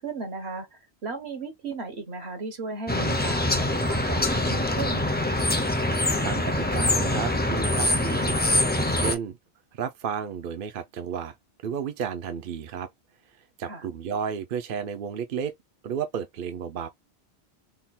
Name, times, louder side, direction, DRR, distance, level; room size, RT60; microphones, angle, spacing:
voice 1, 0.0-5.2 13.7-13.9, right 3 dB, 75° right, 1.5 m, -36 dB
sound 1, 2.9-9.2, left 1 dB, 15° left, 0.4 m, -24 dB
voice 2, 6.2-9.4 9.7-11.4 11.6-12.9 13.6-15.5 15.8-16.9, right 7 dB, 60° right, 0.7 m, -32 dB
3.7 x 2.3 x 4.1 m
omnidirectional pair, 1.1 m